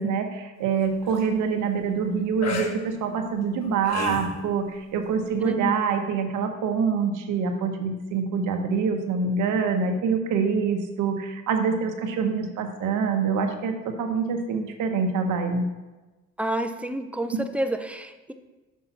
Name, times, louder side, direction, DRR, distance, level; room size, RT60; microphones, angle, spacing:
voice 1, 0.0-15.7 17.3-17.4, right 5 dB, 85° right, 5 dB, 1.0 m, -25 dB
sound 1, 0.8-1.2 2.4-2.7 3.5-4.4 5.5-5.6, left 4 dB, 60° left, 1.1 m, -32 dB
voice 2, 5.4-5.7 16.4-18.3, right 1 dB, 5° right, 8 dB, 0.5 m, -29 dB
6.0 x 4.7 x 5.7 m, 1.2 s
cardioid pair, 90°, 30 cm